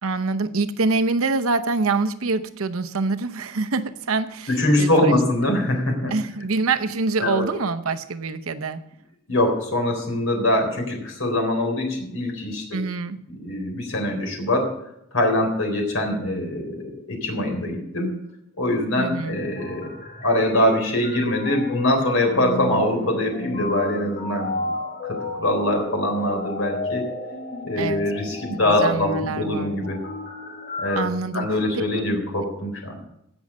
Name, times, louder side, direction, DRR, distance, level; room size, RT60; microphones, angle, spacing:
voice 1, 0.0-5.1 6.1-8.8 12.7-13.2 19.0-19.4 27.8-28.1 28.5-29.8 30.9-31.5 31.8-31.9, right 3 dB, 85° right, 9 dB, 0.8 m, -25 dB
voice 2, 4.5-6.1 7.2-7.4 9.3-12.8 13.4-14.7 15.1-18.1 18.6-19.9 20.2-24.6 25.0-27.0 27.6-30.0 30.8-31.1 31.3-33.0, left 1 dB, 75° left, 2 dB, 3.7 m, -23 dB
sound 1, 19.3-31.0, left 2 dB, 50° left, 2.1 m, -33 dB
17.0 x 6.3 x 5.4 m, 0.79 s
head